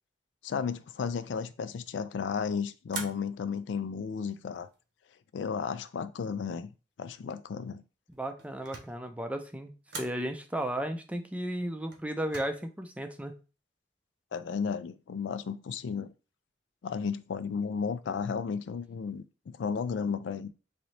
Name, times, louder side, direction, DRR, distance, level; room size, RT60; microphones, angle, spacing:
voice 1, 0.4-4.7 5.3-6.7 7.0-7.8 14.3-16.1 16.8-20.5, left 6 dB, 75° left, 0.3 m, -33 dB
sound 1, 2.9-3.6 4.3-4.9 8.1-9.1 9.9-10.3 11.9-12.4, right 4 dB, 70° right, 0.9 m, -42 dB
voice 2, 8.2-13.4, right 1 dB, 10° right, 0.4 m, -34 dB
3.9 x 2.7 x 3.2 m
head